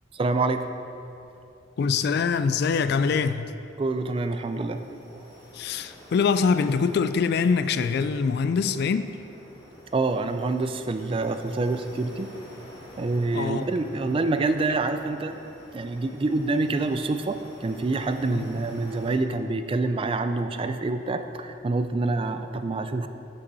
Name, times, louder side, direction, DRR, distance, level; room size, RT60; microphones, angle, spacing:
voice 1, 0.1-0.7 3.8-4.8 5.1-5.2 9.9-12.3 13.0-15.4 15.7-23.1, right 3 dB, 30° right, 8 dB, 0.4 m, -26 dB
voice 2, 1.8-3.5 5.5-9.2 13.3-13.7 14.7-14.8 18.3-18.5, left 5 dB, 60° left, 12 dB, 0.3 m, -24 dB
sound 1, 3.6-19.2, equal, 25° left, 2.0 m, -48 dB
11.5 x 5.5 x 4.0 m, 2.7 s
head